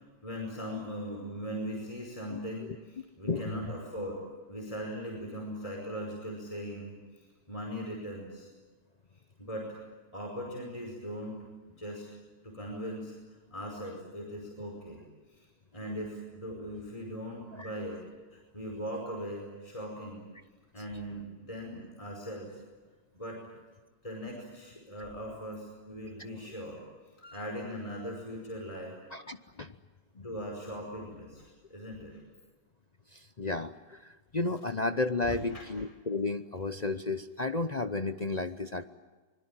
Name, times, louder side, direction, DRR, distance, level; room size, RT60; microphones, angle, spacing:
voice 1, 0.0-8.5 9.4-9.8 10.1-12.1 12.4-15.0 15.3-15.5 15.7-18.0 18.3-20.3 20.7-22.6 23.1-23.4 24.0-26.8 27.3-29.0 30.2-32.2 35.2-35.7, equal, 20° left, 0 dB, 5.3 m, -40 dB
voice 2, 3.3-3.7 17.6-17.7 27.2-27.4 29.1-29.7 30.2-30.3 33.1-38.8, left 3 dB, 40° left, 10 dB, 0.6 m, -33 dB
25.0 x 22.0 x 8.9 m, 1.3 s
omnidirectional pair, 1.9 m